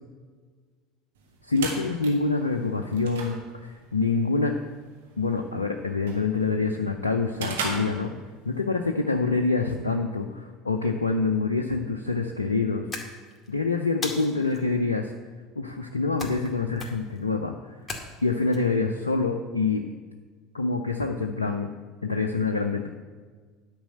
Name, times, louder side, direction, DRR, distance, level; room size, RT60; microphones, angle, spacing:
sound 1, 1.2-8.6, right 4 dB, 75° right, 1.6 m, -39 dB
voice 1, 1.4-4.5 5.2-8.1 8.4-12.9 13.5-15.1 15.6-17.8 18.2-19.8 20.5-21.7 22.0-22.9, left 3 dB, 90° left, 4 dB, 0.6 m, -26 dB
sound 2, 12.9-13.5 14.0-14.6 16.2-16.5 16.8-17.2 17.9-18.6, left 2 dB, 15° left, 2.2 m, -37 dB
10.0 x 5.4 x 7.6 m, 1.5 s
figure-of-eight pair, 70°, 0 cm